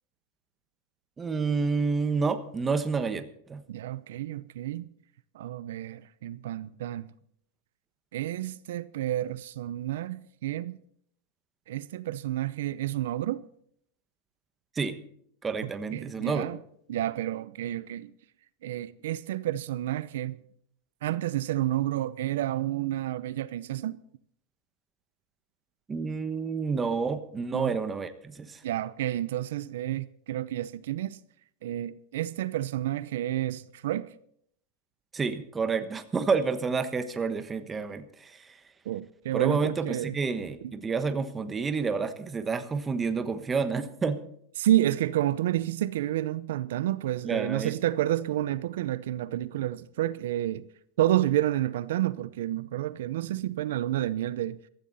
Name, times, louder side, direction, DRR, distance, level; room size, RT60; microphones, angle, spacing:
voice 1, 1.2-3.6 14.7-15.0 15.4-16.5 25.9-28.6 35.1-38.6 39.3-44.2 47.2-47.7, right 5 dB, 15° right, 1.2 m, -29 dB
voice 2, 3.7-4.9 5.3-7.0 8.1-10.8 11.7-13.4 15.6-16.6 16.9-18.1 18.6-20.4 21.0-24.0 27.5-27.8 28.6-31.2 31.6-34.1 38.8-40.2 40.6-40.7 44.6-50.7 51.0-54.6, right 13 dB, 75° right, 0.6 m, -30 dB
15.5 x 14.0 x 4.1 m
supercardioid pair, 150°, 0 cm